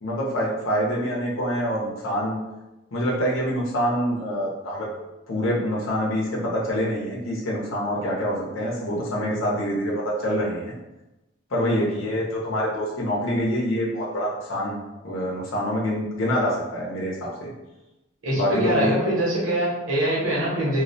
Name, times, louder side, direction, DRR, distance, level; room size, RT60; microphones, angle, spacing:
voice 1, 0.0-2.4 2.9-4.9 5.3-10.7 11.5-14.8 15.0-17.5 18.3-18.9, equal, 85° left, -4 dB, 0.7 m, -26 dB
voice 2, 18.2-20.8, right 1 dB, 70° right, -6 dB, 0.9 m, -23 dB
2.3 x 2.1 x 2.6 m, 1.0 s
head